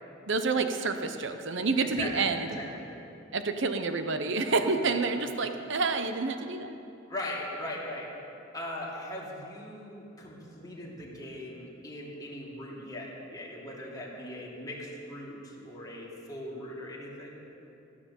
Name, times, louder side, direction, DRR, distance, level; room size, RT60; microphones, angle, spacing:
voice 1, 0.3-2.5 3.3-6.8, right 4 dB, 65° right, 8 dB, 0.8 m, -28 dB
voice 2, 1.8-2.9 4.8-4.9 7.1-8.1 8.5-17.4, left 1 dB, 20° left, -5 dB, 2.8 m, -40 dB
16.0 x 9.9 x 7.0 m, 2.7 s
head